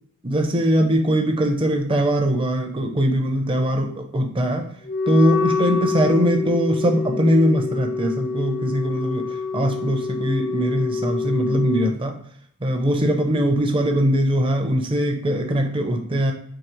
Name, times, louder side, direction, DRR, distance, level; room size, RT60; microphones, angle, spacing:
voice 1, 0.2-4.7 5.1-12.2 12.6-16.3, equal, 25° right, 4 dB, 0.5 m, -21 dB
Wind instrument woodwind instrument, 4.9-11.9, left 4 dB, 45° left, 0.3 m, -26 dB
4.7 x 2.8 x 3.0 m, 0.67 s
head